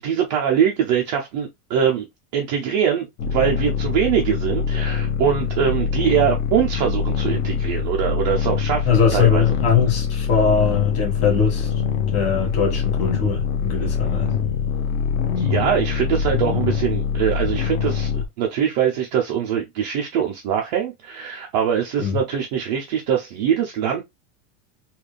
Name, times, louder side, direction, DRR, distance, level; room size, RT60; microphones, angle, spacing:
voice 1, 0.0-2.1 2.3-9.4 15.3-24.0, right 8 dB, 30° right, 0.4 m, -22 dB
sound 1, 3.2-18.3, left 6 dB, 55° left, 0.8 m, -24 dB
voice 2, 8.8-11.7 12.1-14.3 22.0-22.2, left 6 dB, 30° left, 1.6 m, -21 dB
3.8 x 2.3 x 3.2 m
supercardioid pair, 175°, 46 cm